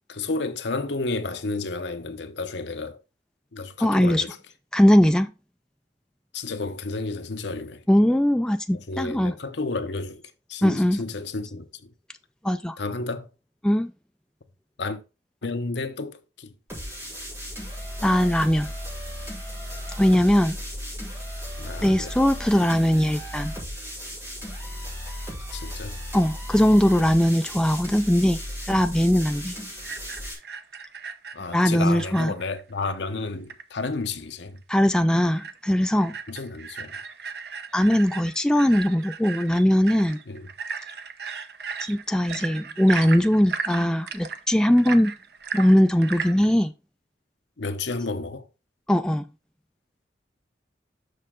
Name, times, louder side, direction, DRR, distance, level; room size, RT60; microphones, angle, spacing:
voice 1, 0.1-3.0 3.5-4.4 6.3-7.8 8.7-10.2 10.5-11.9 12.8-13.3 14.8-15.0 15.4-16.5 21.6-22.2 22.6-22.7 25.5-26.0 31.3-34.6 36.3-37.0 40.3-40.5 47.6-48.5, left 3 dB, 75° left, 0.8 m, -31 dB
voice 2, 3.8-4.2 4.7-5.3 7.9-9.3 10.6-11.0 12.4-12.8 13.6-13.9 18.0-18.7 20.0-20.6 21.8-23.5 26.1-28.4 28.7-29.5 31.5-32.3 34.7-36.1 37.7-40.2 41.9-45.1 45.5-46.7 48.9-49.2, equal, 5° left, 0.3 m, -20 dB
sound 1, 16.7-30.3, equal, 15° right, 3.8 m, -35 dB
sound 2, 29.8-32.6 32.9-33.0 33.3-33.6 34.1-34.2 34.6-34.7 35.1-35.6 35.9-46.5, right 6 dB, 60° right, 0.7 m, -36 dB
6.6 x 6.4 x 3.7 m
head